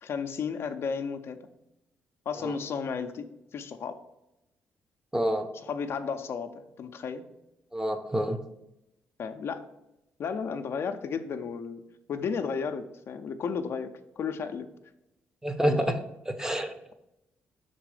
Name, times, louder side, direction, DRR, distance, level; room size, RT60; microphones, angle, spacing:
voice 1, 0.0-1.4 2.3-4.0 5.6-7.3 9.2-9.7 10.2-14.7 15.6-16.0, left 6 dB, 60° left, 7 dB, 0.5 m, -33 dB
voice 2, 5.1-5.5 7.7-8.4 15.4-16.0 16.3-16.7, right 1 dB, 10° right, 9 dB, 0.7 m, -27 dB
5.8 x 4.1 x 4.9 m, 0.88 s
cardioid pair, 70°, 5 cm